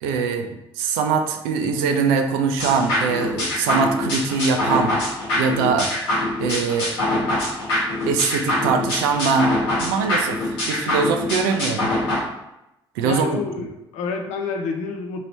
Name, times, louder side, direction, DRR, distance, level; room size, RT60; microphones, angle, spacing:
voice 1, 0.0-0.5 0.8-4.9 5.4-5.9 6.4-6.9 8.1-11.9 13.0-13.3, right 5 dB, 70° right, 6 dB, 0.4 m, -22 dB
sound 1, 2.6-12.2, left 1 dB, 75° left, 0.8 m, -24 dB
voice 2, 13.0-15.3, left 4 dB, 60° left, 4 dB, 0.5 m, -28 dB
3.0 x 2.8 x 2.9 m, 0.90 s
figure-of-eight pair, 50°, 13 cm